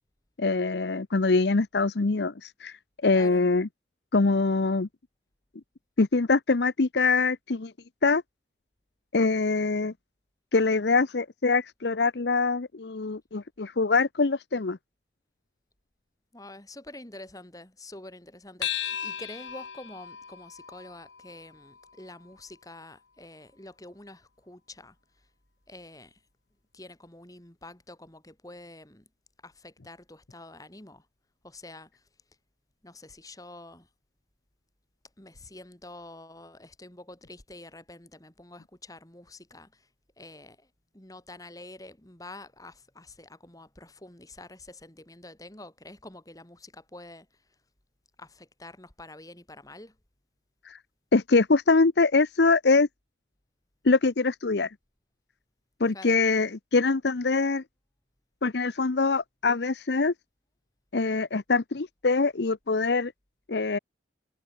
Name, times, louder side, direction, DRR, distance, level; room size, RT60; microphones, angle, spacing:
voice 1, 0.4-2.8 3.0-3.7 4.1-4.9 6.0-7.7 8.0-8.2 9.1-9.9 10.5-14.8 50.7-50.8 51.1-52.9 53.8-54.7 55.8-57.6 58.4-60.1 60.9-63.1 63.5-63.8, left 3 dB, 65° left, 0.8 m, -24 dB
voice 2, 3.1-3.5 16.3-25.0 25.7-26.2 26.7-29.1 29.4-31.1 31.4-32.0 32.8-33.9 35.2-39.9 40.2-47.4 48.2-50.0 55.9-56.2, left 2 dB, 20° left, 2.8 m, -47 dB
sound 1, 18.6-23.4, left 10 dB, 85° left, 2.0 m, -38 dB
head